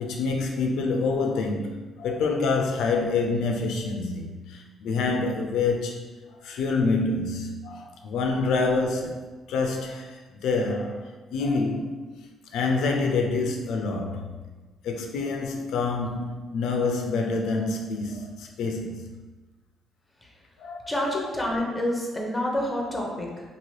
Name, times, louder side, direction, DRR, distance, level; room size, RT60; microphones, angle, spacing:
voice 1, 0.0-9.2 9.5-12.1 12.5-14.3 14.8-19.0 20.6-20.9, left 3 dB, 85° left, 2 dB, 0.3 m, -27 dB
voice 2, 20.9-23.5, left 1 dB, 10° left, -1 dB, 0.7 m, -28 dB
2.8 x 2.5 x 3.1 m, 1.3 s
cardioid pair, 90°, 0 cm